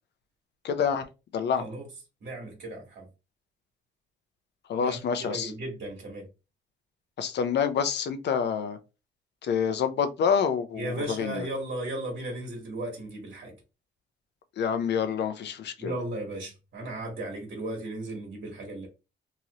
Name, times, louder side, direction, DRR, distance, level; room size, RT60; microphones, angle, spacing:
voice 1, 0.6-1.1 1.3-1.7 4.7-5.5 7.2-8.8 9.4-11.4 14.6-15.9, left 7 dB, 60° left, 0.6 m, -27 dB
voice 2, 1.6-1.9 2.2-3.1 4.8-5.0 5.3-6.3 10.7-13.5 15.8-18.9, right 1 dB, 55° right, 1.4 m, -36 dB
3.0 x 2.5 x 3.0 m
cardioid pair, 90°, 20 cm